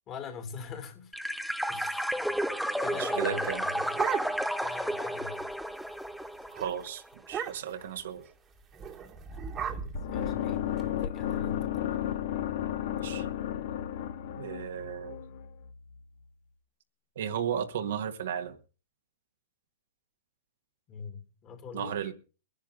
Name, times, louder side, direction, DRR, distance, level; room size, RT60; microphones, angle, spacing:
voice 1, 0.1-1.1 1.7-2.2 2.8-4.2 4.6-5.5 9.3-12.0 20.9-22.1, left 5 dB, 30° left, 3.1 m, -43 dB
sound 1, 1.1-6.9, equal, ahead, 0.7 m, -32 dB
voice 2, 2.9-3.6 6.5-8.3 12.9-13.3 14.4-15.2 17.2-18.6 21.7-22.1, right 9 dB, 70° right, 1.9 m, -34 dB
sound 2, 3.4-4.7 5.0-5.1 5.4-5.7 6.0-6.2 6.6-6.7 7.2-7.9 8.7-10.8, right 7 dB, 25° right, 1.9 m, -37 dB
sound 3, 9.9-16.0, left 11 dB, 55° left, 1.2 m, -33 dB
22.5 x 10.5 x 3.9 m
hypercardioid pair, 120°, 0 cm